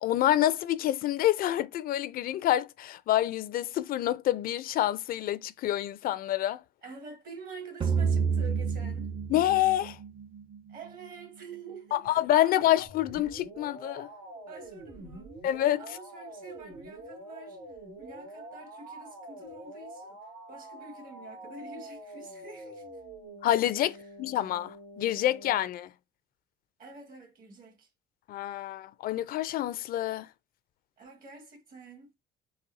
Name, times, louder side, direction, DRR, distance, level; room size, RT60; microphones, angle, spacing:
voice 1, 0.0-6.6 9.3-10.0 11.9-14.1 15.4-15.8 23.4-25.9 28.3-30.3, left 13 dB, 60° left, 0.4 m, -27 dB
voice 2, 6.8-9.1 10.7-12.8 14.4-15.3 15.8-17.6 18.0-20.2 20.5-22.8 23.8-24.1 26.8-27.9 31.0-32.1, right 4 dB, 55° right, 1.7 m, -47 dB
sound 1, 7.8-11.1, right 6 dB, 30° right, 0.5 m, -29 dB
sound 2, 12.8-25.7, right 1 dB, 90° right, 1.6 m, -46 dB
4.1 x 2.7 x 2.6 m
cardioid pair, 110°, 17 cm